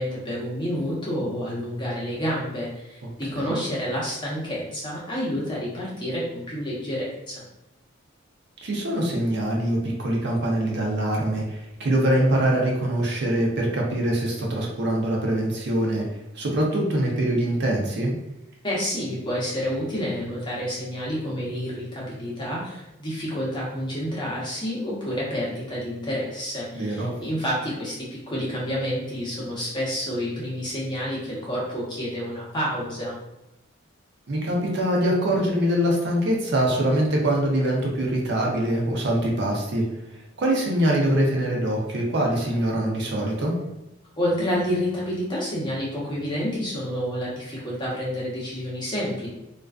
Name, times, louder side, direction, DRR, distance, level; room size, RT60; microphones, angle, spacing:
voice 1, 0.0-7.4 18.6-33.2 44.2-49.3, equal, 25° left, -6 dB, 0.8 m, -29 dB
voice 2, 8.6-16.0 16.3-18.2 26.7-27.1 34.3-39.8 40.4-43.5, right 1 dB, 60° right, -1 dB, 0.5 m, -23 dB
2.3 x 2.3 x 2.3 m, 0.91 s
head